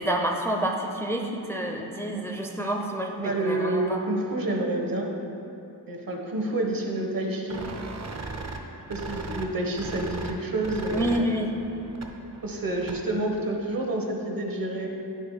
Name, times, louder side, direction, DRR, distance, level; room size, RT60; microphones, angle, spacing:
voice 1, 0.0-4.0 10.9-11.5, right 1 dB, 5° left, 1 dB, 0.5 m, -28 dB
voice 2, 3.2-5.1 5.9-7.6 8.9-11.3 12.4-14.9, right 1 dB, 55° right, 1 dB, 1.0 m, -28 dB
sound 1, 7.5-13.2, right 3 dB, 40° right, 0.6 m, -38 dB
9.8 x 3.4 x 5.5 m, 2.9 s
wide cardioid pair, 95°, 40 cm